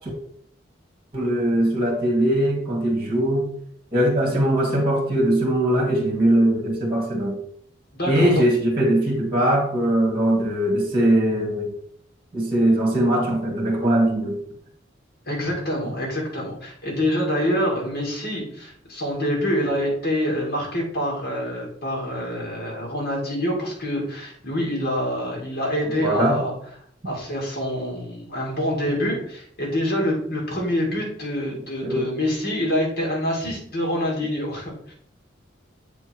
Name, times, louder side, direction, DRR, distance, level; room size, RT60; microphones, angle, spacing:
voice 1, 1.1-3.5 3.9-7.4 8.1-11.7 12.3-14.4 26.0-26.4 31.8-32.1, right 1 dB, 30° right, 0 dB, 1.9 m, -21 dB
voice 2, 7.9-8.3 15.3-26.5 27.0-34.9, equal, 55° left, -2 dB, 2.4 m, -26 dB
7.6 x 3.6 x 4.5 m, 0.64 s
head